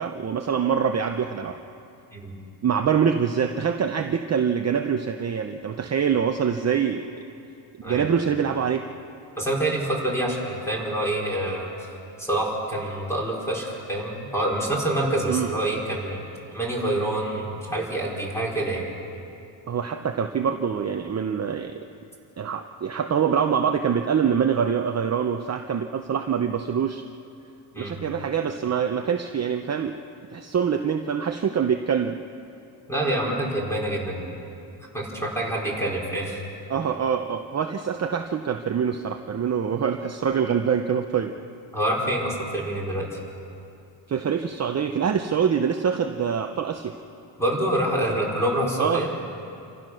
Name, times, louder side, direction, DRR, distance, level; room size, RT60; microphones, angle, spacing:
voice 1, 0.0-1.6 2.6-7.1 7.9-8.8 15.3-15.5 19.7-21.8 22.4-27.0 27.8-30.0 30.3-32.2 36.7-41.3 44.1-46.9 48.8-49.1, right 7 dB, 35° right, 5 dB, 0.7 m, -25 dB
voice 2, 9.4-11.7 12.2-16.2 16.5-18.8 27.7-28.0 32.9-34.3 34.9-36.4 41.7-43.2 47.4-49.1, right 1 dB, 5° left, -4 dB, 4.9 m, -26 dB
28.5 x 15.0 x 6.4 m, 2.6 s
cardioid pair, 135°, 48 cm